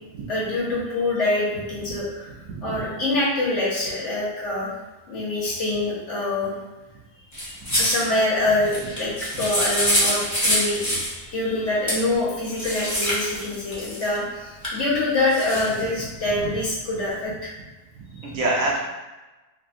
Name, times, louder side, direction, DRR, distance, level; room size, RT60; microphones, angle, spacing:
voice 1, 0.3-2.4 2.6-4.8 5.1-6.5 7.3-9.1 9.4-17.5 18.2-18.3, left 2 dB, 60° left, -7 dB, 1.1 m, -25 dB
sound 1, 7.3-8.1 8.6-11.1 11.9-12.0 12.5-14.2 14.6-14.7 15.3-15.8, equal, 15° left, 0.7 m, -25 dB
voice 2, 18.0-18.8, right 2 dB, 70° right, -3 dB, 1.0 m, -27 dB
3.3 x 2.2 x 2.5 m, 1.1 s
omnidirectional pair, 1.5 m